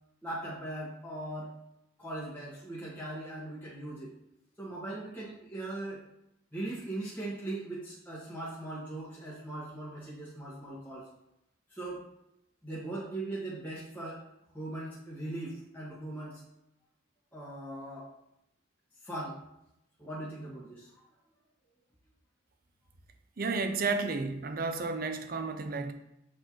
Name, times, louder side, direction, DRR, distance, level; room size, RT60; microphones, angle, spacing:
voice 1, 0.2-1.6 2.0-4.1 4.6-6.0 6.5-11.1 11.7-12.1 12.6-14.2 14.5-16.4 17.3-18.1 19.0-19.4 20.0-20.9, right 1 dB, 10° left, -9 dB, 1.6 m, -39 dB
voice 2, 23.4-25.9, right 3 dB, 50° right, 8 dB, 0.6 m, -32 dB
7.8 x 4.3 x 3.0 m, 0.83 s
head